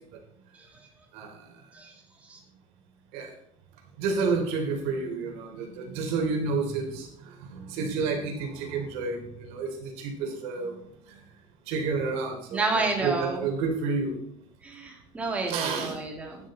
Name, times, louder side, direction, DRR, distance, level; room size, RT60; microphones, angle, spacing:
voice 1, 4.0-7.1 7.5-10.7 11.7-14.2 15.5-16.0, right 4 dB, 75° right, 3 dB, 3.1 m, -30 dB
voice 2, 12.5-13.4 14.6-16.4, right 3 dB, 15° right, 0 dB, 2.3 m, -29 dB
13.0 x 9.8 x 4.2 m, 0.70 s
cardioid pair, 175°, 11 cm